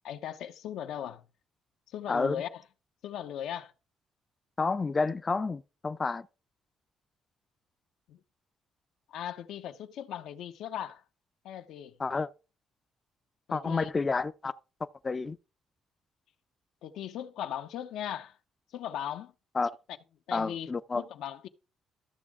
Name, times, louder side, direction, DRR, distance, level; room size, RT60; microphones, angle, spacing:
voice 1, 0.0-1.2 1.9-2.6 3.0-3.7 8.1-8.2 9.1-11.0 11.4-12.0 13.5-13.9 16.8-18.4 18.7-19.3 20.3-21.5, left 10 dB, 85° left, 0.8 m, -38 dB
voice 2, 4.6-6.3 12.0-12.3 13.5-14.5 15.0-15.4 19.6-19.7 20.3-21.0, left 4 dB, 30° left, 0.4 m, -29 dB
13.5 x 6.2 x 3.6 m
cardioid pair, 90°, 0 cm